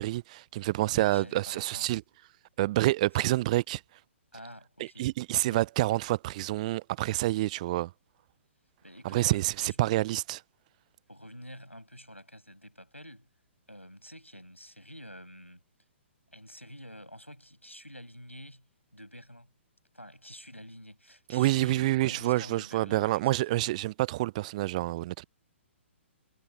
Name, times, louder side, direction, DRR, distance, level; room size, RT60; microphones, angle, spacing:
voice 1, 0.0-2.0 2.6-3.8 4.8-7.9 9.0-10.4 21.3-25.2, right 17 dB, 35° right, 0.6 m, -28 dB
voice 2, 0.9-1.9 3.1-3.4 4.3-5.1 5.5-5.6 8.8-10.1 11.1-13.3 13.7-15.6 16.3-19.5 19.9-23.7, equal, 90° left, 6.6 m, -48 dB
figure-of-eight pair, 120°, 7 cm